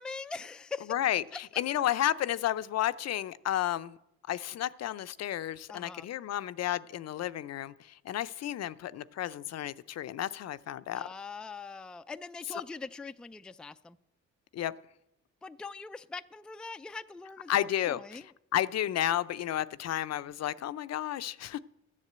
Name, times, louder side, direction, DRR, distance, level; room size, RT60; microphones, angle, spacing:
voice 1, 0.0-0.9 5.7-6.1 10.9-14.0 15.4-18.2, left 4 dB, 5° left, 11 dB, 0.3 m, -42 dB
voice 2, 0.9-4.0 4.3-11.1 14.5-14.7 17.5-21.6, left 12 dB, 60° left, 15 dB, 0.5 m, -32 dB
13.0 x 7.4 x 7.9 m, 0.83 s
cardioid pair, 90°, 30 cm